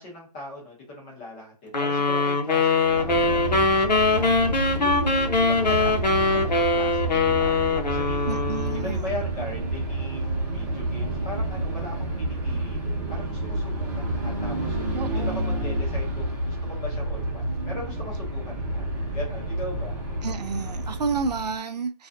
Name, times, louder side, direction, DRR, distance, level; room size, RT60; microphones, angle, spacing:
voice 1, 0.0-8.4 8.7-18.9 19.1-20.0, left 1 dB, 10° left, 0.6 m, -39 dB
sound 1, 1.7-8.9, left 3 dB, 85° left, 0.7 m, -22 dB
sound 2, 2.8-21.6, right 1 dB, 25° right, 0.8 m, -29 dB
voice 2, 8.2-9.1 14.9-15.4 20.2-22.1, right 5 dB, 75° right, 0.5 m, -30 dB
2.4 x 2.3 x 2.4 m
hypercardioid pair, 165°, 21 cm